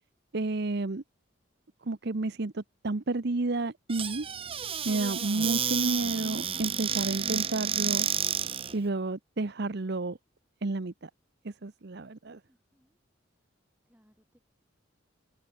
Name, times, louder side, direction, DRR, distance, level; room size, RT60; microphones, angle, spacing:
voice 1, 0.3-1.0 1.9-4.3 4.8-8.1 8.7-10.2 10.6-11.1 11.4-12.4, right 2 dB, 55° right, 0.8 m, -31 dB
Squeak / Cupboard open or close, 3.9-8.8, right 8 dB, 30° right, 1.0 m, -31 dB
voice 2, 12.5-13.0 13.8-14.4, equal, 10° right, 3.9 m, -66 dB
head